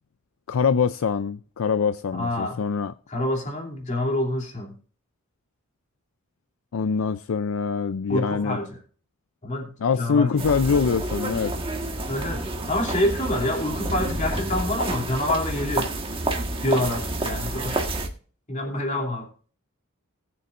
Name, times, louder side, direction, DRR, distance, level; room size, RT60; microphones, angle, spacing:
voice 1, 0.5-2.9 6.7-8.6 9.8-11.5, left 5 dB, 70° left, 0.4 m, -24 dB
voice 2, 2.2-2.6 3.1-4.7 8.1-8.8 9.4-10.4 12.1-15.9 16.6-17.9 18.5-19.3, left 1 dB, 35° left, 2.9 m, -27 dB
sound 1, 10.4-18.1, right 2 dB, 25° right, 1.5 m, -29 dB
19.5 x 7.1 x 2.5 m
head